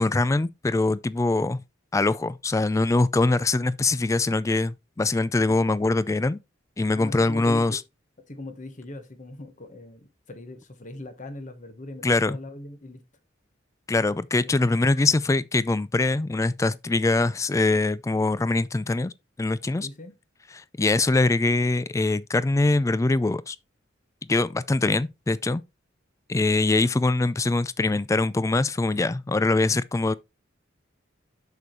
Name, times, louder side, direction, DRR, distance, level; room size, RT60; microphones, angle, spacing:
voice 1, 0.0-1.6 1.9-6.4 6.8-7.8 12.0-12.4 13.9-19.1 19.4-19.9 20.5-23.6 24.3-25.6 26.3-30.1, left 2 dB, 15° left, 0.3 m, -23 dB
voice 2, 6.9-7.8 8.3-13.0 14.4-14.5 19.8-20.1 26.7-27.0, left 1 dB, 40° left, 1.2 m, -40 dB
6.8 x 6.7 x 3.1 m
head